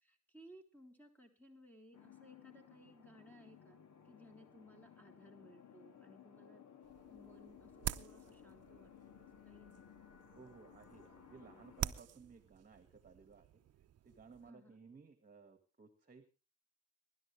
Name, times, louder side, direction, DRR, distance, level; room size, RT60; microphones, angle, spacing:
voice 1, 0.0-3.8 4.1-6.6 7.1-9.8 14.4-14.8, equal, 5° left, 3 dB, 4.0 m, -61 dB
sound 1, 1.9-11.9, left 9 dB, 65° left, 2.7 m, -59 dB
sound 2, 6.8-14.5, right 11 dB, 55° right, 0.8 m, -48 dB
voice 2, 10.3-13.6 14.0-16.3, right 5 dB, 30° right, 9 dB, 2.0 m, -59 dB
23.0 x 11.5 x 3.4 m, 0.33 s
cardioid pair, 90°, 30 cm